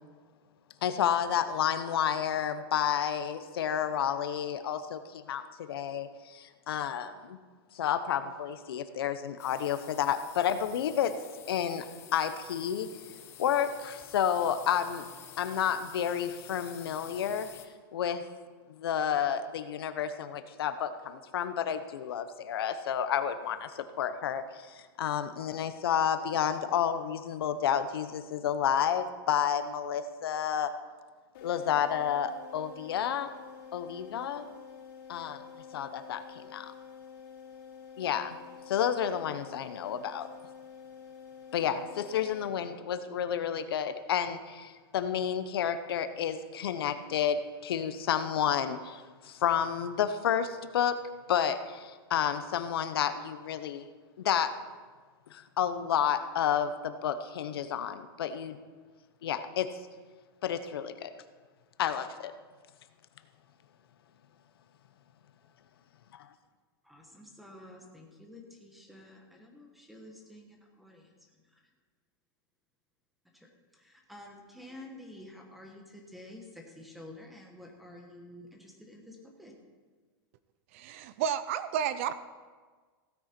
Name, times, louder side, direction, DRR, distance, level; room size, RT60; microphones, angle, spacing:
voice 1, 0.8-7.4 7.7-11.1 11.5-11.8 12.1-12.9 13.4-15.1 15.4-17.5 17.9-18.2 18.8-30.7 31.4-33.3 33.7-34.5 35.1-35.4 35.7-36.7 38.0-38.4 38.7-40.3 41.5-51.0 51.3-53.9 54.2-54.5 55.3-58.6 59.2-59.7 60.4-61.1 61.8-62.3, left 9 dB, 85° left, 10 dB, 0.9 m, -30 dB
sound 1, 9.4-17.7, left 10 dB, 20° left, 0.7 m, -50 dB
sound 2, 31.3-43.1, left 7 dB, 60° left, 4.0 m, -49 dB
voice 2, 66.8-71.1 71.5-71.6 73.3-73.5 73.7-79.5, left 1 dB, ahead, 1 dB, 1.2 m, -50 dB
voice 3, 80.7-82.1, right 9 dB, 35° right, 14 dB, 0.4 m, -31 dB
16.0 x 9.1 x 4.5 m, 1.5 s
supercardioid pair, 180°, 12 cm